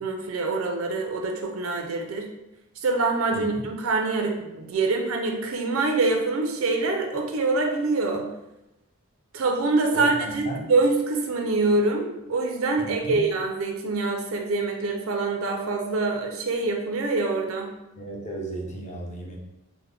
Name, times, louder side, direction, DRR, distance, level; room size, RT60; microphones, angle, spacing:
voice 1, 0.0-2.3 2.8-8.3 9.3-17.7, right 3 dB, 75° right, 3 dB, 0.5 m, -25 dB
voice 2, 3.3-3.6 9.9-10.6 12.8-13.3 18.0-19.4, right 1 dB, 35° left, -2 dB, 0.6 m, -35 dB
3.3 x 2.1 x 3.2 m, 0.95 s
head